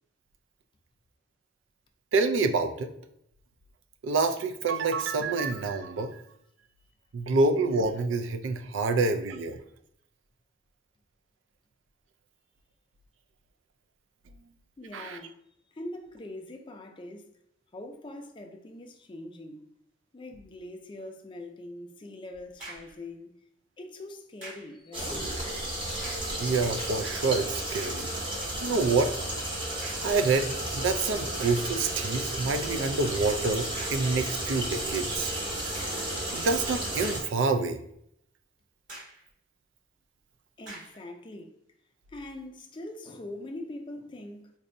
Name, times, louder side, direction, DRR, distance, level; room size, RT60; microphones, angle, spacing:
voice 1, 2.1-2.9 4.0-6.2 7.1-9.6 14.9-15.2 26.4-28.1 28.6-29.1 30.0-35.3 36.3-37.8, right 3 dB, 90° right, 0.4 m, -27 dB
voice 2, 14.8-15.4 15.8-17.2 17.7-19.7 20.1-23.3 23.8-25.3 40.6-41.5 42.1-44.5, left 1 dB, 25° left, 0.4 m, -42 dB
sound 1, 22.3-23.0 24.4-24.8 25.9-26.4 27.0-27.1 27.8-28.1 29.8-30.2 30.9-31.0 31.4-31.8 33.7-34.1 35.7-36.1 36.7-37.5 37.9-38.0 38.9-39.3 40.6-41.0, right 2 dB, 45° right, 1.5 m, -45 dB
sound 2, 24.9-37.2, right 1 dB, 25° right, 0.8 m, -33 dB
4.2 x 2.6 x 2.6 m
head